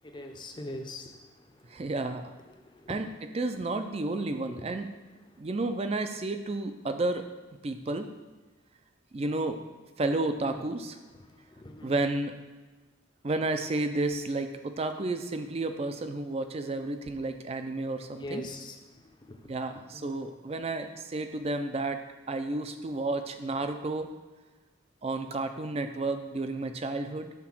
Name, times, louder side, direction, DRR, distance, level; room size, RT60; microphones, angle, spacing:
voice 1, 0.0-1.9 2.5-3.0 4.5-4.8 5.1-5.4 10.5-10.6 11.1-11.9 18.2-20.1, left 1 dB, 20° left, 4 dB, 0.5 m, -43 dB
voice 2, 1.7-2.3 2.9-3.1 3.3-4.9 5.4-7.2 7.6-8.1 9.1-9.6 10.0-11.0 11.8-12.3 13.2-18.4 19.5-22.0 22.3-24.1 25.0-27.3, right 2 dB, 30° right, 8 dB, 0.4 m, -31 dB
5.9 x 3.7 x 6.0 m, 1.2 s
head